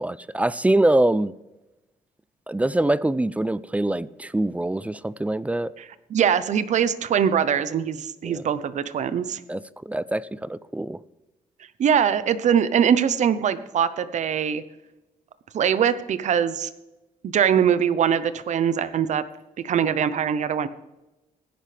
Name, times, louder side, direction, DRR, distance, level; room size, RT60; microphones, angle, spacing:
voice 1, 0.0-1.3 2.5-5.7 8.2-8.4 9.5-11.0, right 1 dB, 10° right, 0.3 m, -24 dB
voice 2, 6.1-9.4 11.8-14.6 15.5-16.7 17.2-19.2 19.6-20.7, right 8 dB, 55° right, 0.7 m, -22 dB
17.0 x 10.0 x 3.4 m
cardioid pair, 120°, 15 cm